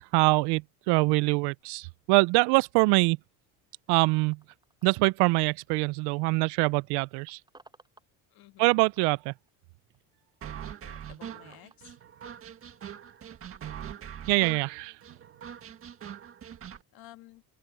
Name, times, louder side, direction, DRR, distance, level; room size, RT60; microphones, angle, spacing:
voice 1, 0.1-3.2 3.9-4.4 4.8-7.4 8.6-9.3 14.3-14.9, right 26 dB, 75° right, 0.5 m, -24 dB
sound 1, 1.6-6.4 6.6-8.7 9.0-10.4 10.7-13.4, right 2 dB, 10° right, 7.5 m, -63 dB
voice 2, 8.3-8.7 10.8-11.9 16.9-17.4, left 16 dB, 60° left, 1.6 m, -52 dB
sound 2, 10.4-16.8, right 9 dB, 35° right, 1.7 m, -42 dB
open air
cardioid pair, 140°, 40 cm